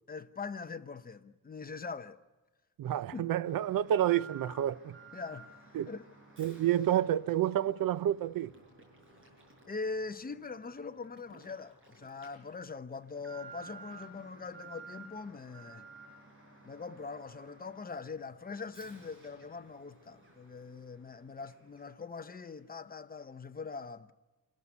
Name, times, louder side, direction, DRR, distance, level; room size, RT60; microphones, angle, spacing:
voice 1, 0.1-2.2 3.1-3.3 5.1-6.0 9.7-15.8 16.6-24.1, left 4 dB, 25° left, 0.8 m, -42 dB
voice 2, 2.8-5.0 5.7-5.9 6.4-8.5, right 11 dB, 70° right, 0.7 m, -29 dB
Alarm, 3.4-22.1 22.4-22.5 23.2-23.3, right 4 dB, 35° right, 6.2 m, -55 dB
27.5 x 14.0 x 9.7 m
wide cardioid pair, 155°, 36 cm